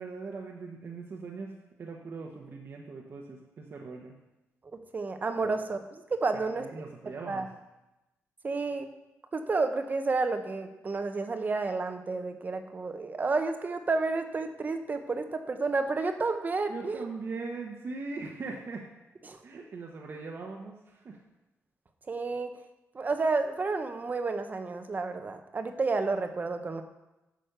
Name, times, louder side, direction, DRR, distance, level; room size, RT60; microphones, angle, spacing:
voice 1, 0.0-1.5 1.8-4.1 5.4-5.6 6.4-7.5 16.7-18.8 19.4-21.2, right 4 dB, 50° right, -1 dB, 1.2 m, -40 dB
voice 2, 4.9-5.8 6.1-6.6 7.3-7.5 8.4-8.9 9.3-17.1 19.3-19.4 22.1-22.5 22.9-26.8, right 3 dB, 35° right, 7 dB, 0.9 m, -30 dB
10.5 x 6.5 x 6.7 m, 1.0 s
wide cardioid pair, 135°, 5 cm